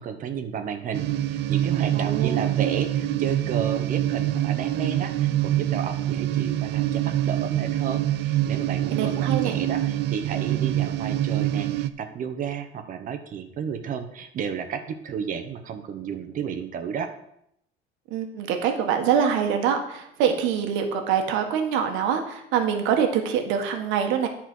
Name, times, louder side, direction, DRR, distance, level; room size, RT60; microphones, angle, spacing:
voice 1, 0.0-17.1, right 7 dB, 45° right, 8 dB, 1.0 m, -32 dB
sound 1, 0.9-11.9, right 13 dB, 65° right, 0.5 m, -25 dB
voice 2, 1.9-2.4 8.9-9.6 18.1-24.3, right 7 dB, 85° right, 5 dB, 1.5 m, -24 dB
10.5 x 4.3 x 6.2 m, 0.76 s
cardioid pair, 150°, 19 cm